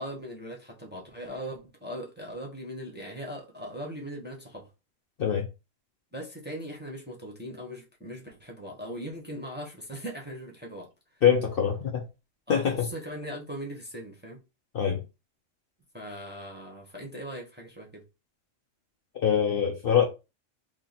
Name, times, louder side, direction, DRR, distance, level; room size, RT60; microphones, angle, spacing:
voice 1, 0.0-4.7 6.1-10.9 12.5-14.4 15.9-18.0, equal, 10° right, 0.9 m, -39 dB
voice 2, 11.2-12.0 12.5-12.9 14.7-15.0 19.1-20.1, left 8 dB, 55° left, 0.8 m, -24 dB
2.9 x 2.8 x 4.0 m
omnidirectional pair, 1.3 m